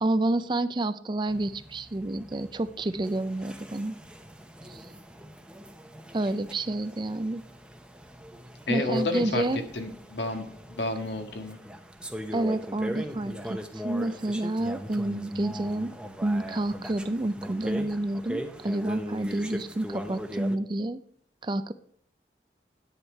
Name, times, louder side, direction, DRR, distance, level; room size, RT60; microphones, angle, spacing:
voice 1, 0.0-4.0 4.7-4.9 6.1-7.4 8.7-9.6 12.3-15.9 16.2-21.0 21.4-21.7, right 2 dB, 25° right, 13 dB, 0.4 m, -29 dB
sound 1, 1.3-20.6, equal, 5° right, 0.8 m, -40 dB
voice 2, 8.7-11.6, left 2 dB, 80° left, 5 dB, 1.6 m, -30 dB
9.8 x 9.8 x 4.5 m, 0.62 s
head